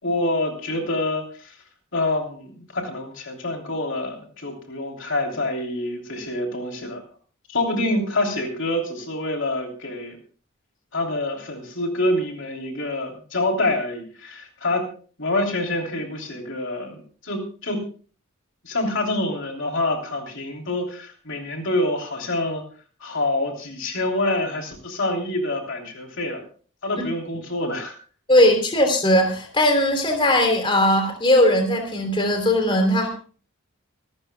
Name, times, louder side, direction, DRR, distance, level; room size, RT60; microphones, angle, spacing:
voice 1, 0.0-1.6 1.9-7.0 7.5-10.2 10.9-14.9 15.2-17.8 18.6-22.6 23.0-26.4 26.8-28.0, left 1 dB, 60° left, 2 dB, 3.2 m, -26 dB
voice 2, 28.3-33.1, left 1 dB, 25° left, 4 dB, 3.1 m, -19 dB
26.0 x 13.0 x 2.3 m, 0.40 s
head